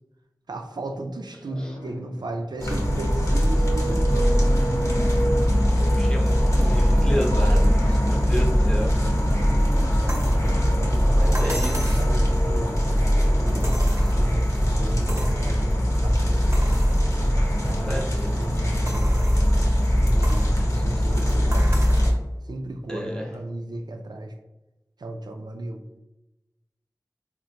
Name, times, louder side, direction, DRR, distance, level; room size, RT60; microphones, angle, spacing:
voice 1, 0.5-4.6 8.9-9.6 10.6-12.8 13.3-16.6 17.1-18.0 18.4-19.2 19.9-21.9 22.5-24.3 25.0-25.8, right 2 dB, 90° right, 4 dB, 0.4 m, -35 dB
sound 1, 1.5-2.5 3.7-8.1, left 1 dB, 80° left, 0.6 m, -39 dB
sound 2, 2.6-22.1, equal, 45° left, 0.8 m, -21 dB
voice 2, 5.5-8.9 11.2-11.9 17.6-18.4 22.9-23.4, equal, 10° left, -2 dB, 0.7 m, -32 dB
sound 3, 10.1-10.4 11.3-12.1 13.6-14.4 15.1-15.4 15.9-16.0 16.5-17.0 17.6-17.7 18.9-19.5 20.2-20.5 21.5-22.1 23.3-23.4, right 1 dB, 40° right, 0.7 m, -35 dB
3.7 x 2.1 x 2.8 m, 0.99 s
wide cardioid pair, 45°, 7 cm